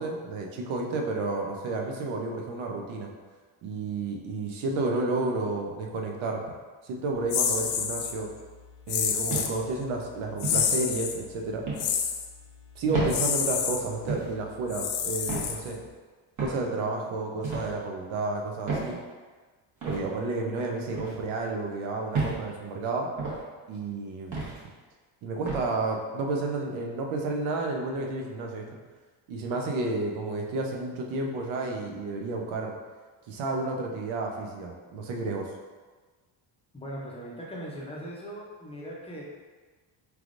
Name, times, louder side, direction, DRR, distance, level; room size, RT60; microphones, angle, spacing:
voice 1, 0.0-3.1 3.6-6.4 6.8-8.3 8.9-11.6 12.8-15.8 16.4-19.0 19.8-23.1 23.7-24.4 25.2-28.6 29.3-32.8 33.3-35.5, right 3 dB, 80° right, 1 dB, 0.8 m, -31 dB
sound 1, 7.3-8.1 8.9-9.6 10.4-11.2 11.8-12.3 13.1-13.8 14.7-15.9, left 7 dB, 70° left, 0.6 m, -28 dB
sound 2, 9.3-9.7 10.4-10.7 11.7-11.9 12.9-13.2 14.1-14.3 15.3-15.5 16.4-16.6 17.4-17.7 18.7-18.9 19.8-20.0 20.9-21.2 22.1-22.4 23.2-23.4 24.3-24.6 25.5-25.7, right 3 dB, 40° right, 1.2 m, -31 dB
voice 2, 36.7-39.2, equal, 15° left, -5 dB, 0.6 m, -39 dB
4.7 x 3.5 x 2.5 m, 1.4 s
cardioid pair, 150°, 47 cm